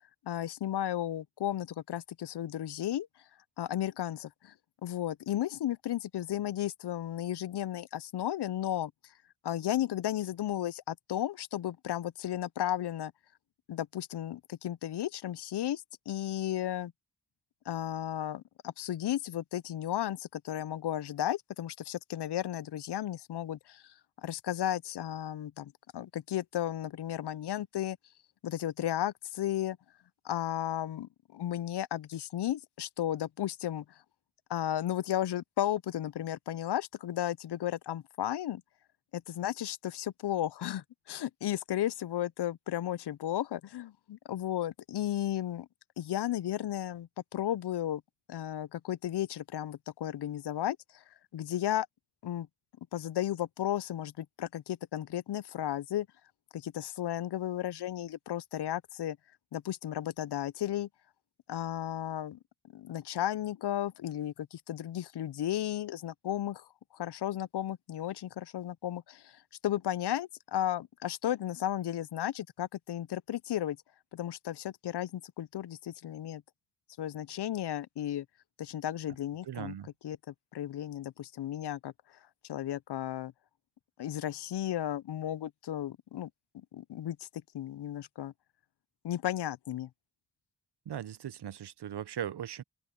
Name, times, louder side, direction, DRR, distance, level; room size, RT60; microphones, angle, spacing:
voice 1, 0.2-3.1 3.6-4.5 4.8-8.9 9.4-13.1 13.7-16.9 17.7-23.9 24.2-28.0 28.4-29.8 30.2-33.8 34.5-38.6 39.1-45.7 46.0-48.0 48.3-51.0 51.3-51.9 52.2-52.5 52.9-56.1 56.5-59.2 59.5-60.9 61.5-62.4 62.7-66.7 66.9-73.8 74.1-76.4 77.0-78.3 78.6-79.7 80.0-81.9 82.5-83.3 84.0-86.3 86.7-87.3 87.5-88.3 89.0-89.9, left 12 dB, 65° left, 0.6 m, -34 dB
voice 2, 79.4-79.9 90.9-92.6, right 9 dB, 65° right, 0.8 m, -39 dB
open air
cardioid pair, 50°, 43 cm